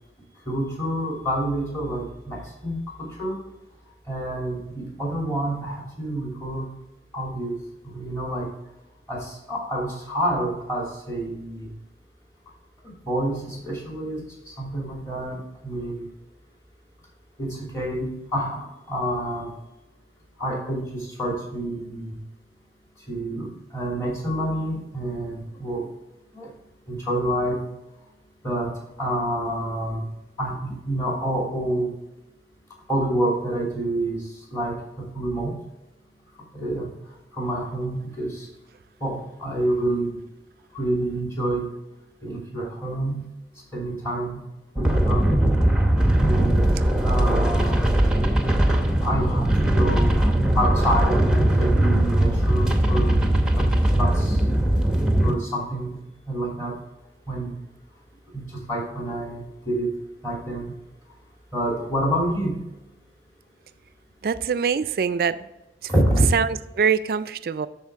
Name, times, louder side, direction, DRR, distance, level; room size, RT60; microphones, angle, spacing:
voice 1, 0.5-3.4 4.1-6.6 7.1-7.6 7.8-8.5 9.1-11.7 12.8-14.2 14.6-15.4 15.6-16.1 17.4-19.5 20.4-22.1 23.1-25.9 26.3-26.5 26.9-27.6 28.4-28.7 29.0-30.0 30.4-31.9 32.9-34.2 34.5-35.5 36.5-36.9 37.3-38.5 39.0-40.2 40.7-41.7 42.2-43.2 43.7-44.4 44.8-45.3 46.2-46.7 47.0-47.9 48.7-50.2 50.5-53.3 53.5-54.4 55.2-56.0 56.3-56.7 57.3-57.6 58.3-59.9 60.2-60.7 61.5-62.6 65.9-66.4, right 1 dB, 15° left, -3 dB, 2.9 m, -27 dB
sound 1, 44.8-55.3, right 1 dB, 5° right, 0.7 m, -20 dB
voice 2, 64.2-65.4 66.3-67.7, right 6 dB, 55° right, 14 dB, 0.3 m, -23 dB
12.0 x 4.5 x 3.5 m, 0.97 s
head